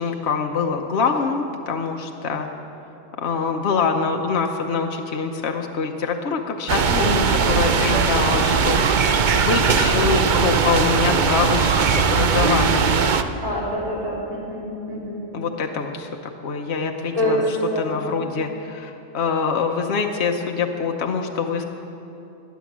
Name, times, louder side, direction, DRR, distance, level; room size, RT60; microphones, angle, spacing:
voice 1, 0.0-2.5 3.2-13.0 15.3-16.1 16.4-17.4 17.8-21.7, left 5 dB, 55° left, 2 dB, 1.1 m, -24 dB
sound 1, 6.7-13.2, right 6 dB, 50° right, 0.6 m, -19 dB
voice 2, 6.8-7.6 13.4-15.2 17.1-17.4 17.7-18.3, left 1 dB, 25° right, -5 dB, 3.6 m, -27 dB
19.5 x 9.6 x 7.4 m, 3.0 s
omnidirectional pair, 1.4 m